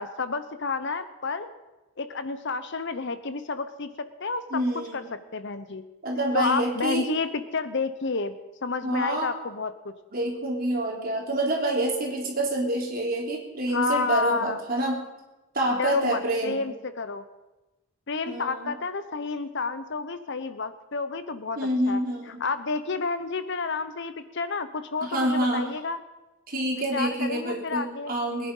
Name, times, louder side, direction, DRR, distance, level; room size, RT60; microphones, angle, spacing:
voice 1, 0.0-1.5 2.0-4.6 4.9-5.0 5.3-5.8 6.3-8.4 8.6-9.9 13.7-14.6 15.7-17.2 18.1-21.6 21.9-22.0 22.3-26.0 26.7-28.1, left 4 dB, 55° left, 12 dB, 0.9 m, -30 dB
voice 2, 4.5-5.1 6.0-7.1 8.8-9.3 10.1-15.0 15.5-16.6 18.2-18.7 21.6-22.4 25.0-25.7 26.5-28.5, right 1 dB, 40° right, -1 dB, 3.7 m, -27 dB
21.5 x 10.5 x 5.6 m, 1.1 s
head